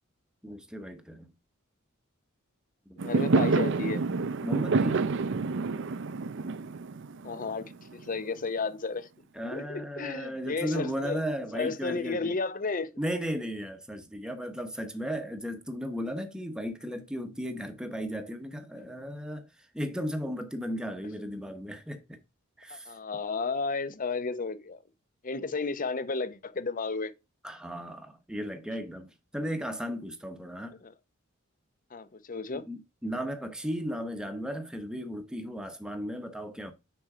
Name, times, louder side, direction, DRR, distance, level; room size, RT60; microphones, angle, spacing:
voice 1, 0.4-1.3 2.9-3.0 4.4-5.1 9.3-12.3 13.0-22.2 22.6-22.9 27.4-30.8 32.5-36.7, equal, 5° right, 0.9 m, -35 dB
voice 2, 3.0-4.0 7.2-9.1 9.4-11.2 11.5-12.9 22.7-24.8 25.2-27.1 30.8-30.9 31.9-32.6, left 4 dB, 40° left, 0.7 m, -33 dB
Fireworks, 3.0-8.2, right 4 dB, 60° right, 0.5 m, -28 dB
6.2 x 4.3 x 4.9 m
head